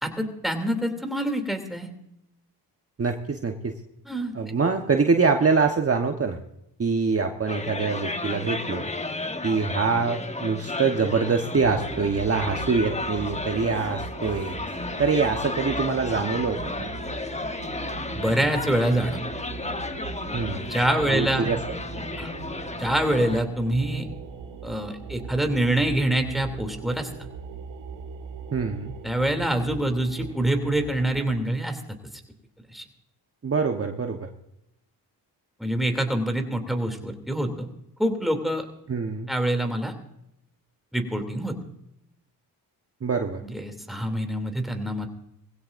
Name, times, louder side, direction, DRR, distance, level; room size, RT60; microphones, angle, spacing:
voice 1, 0.0-1.9 4.0-4.3 18.1-19.2 20.6-21.5 22.2-22.3 22.8-24.1 24.6-27.1 29.0-31.8 32.7-32.8 35.6-37.7 38.0-38.6 39.3-39.9 40.9-41.6 43.4-45.1, right 1 dB, ahead, 5 dB, 2.9 m, -25 dB
voice 2, 3.0-3.7 4.3-6.4 6.8-8.9 9.4-16.9 20.3-20.7 21.1-21.6 28.5-28.9 33.4-34.3 38.9-39.3 43.0-43.4, right 4 dB, 35° right, 4 dB, 1.2 m, -25 dB
sound 1, 7.5-23.4, left 2 dB, 15° left, 1.0 m, -33 dB
sound 2, 11.5-31.4, right 6 dB, 80° right, 2.1 m, -40 dB
20.5 x 16.0 x 2.6 m, 0.83 s
cardioid pair, 55°, 42 cm